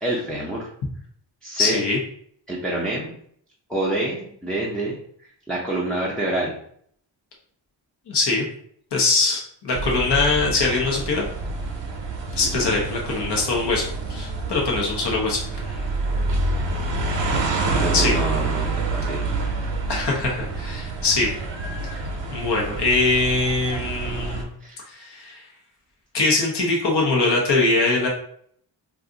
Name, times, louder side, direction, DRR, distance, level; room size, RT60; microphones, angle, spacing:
voice 1, 0.0-0.7 1.4-1.8 2.5-3.1 3.7-5.0 5.5-6.5 12.4-12.8 17.6-19.2 24.6-24.8, right 1 dB, ahead, -4 dB, 0.5 m, -27 dB
voice 2, 1.6-2.0 8.1-8.4 8.9-11.3 12.4-13.8 14.1-15.4 17.9-18.1 19.9-21.3 22.3-24.5 24.9-25.4 26.1-28.1, left 3 dB, 60° left, -1 dB, 0.9 m, -22 dB
sound 1, 9.7-24.4, right 3 dB, 65° right, 0.7 m, -27 dB
2.5 x 2.3 x 3.8 m, 0.64 s
wide cardioid pair, 110°, 47 cm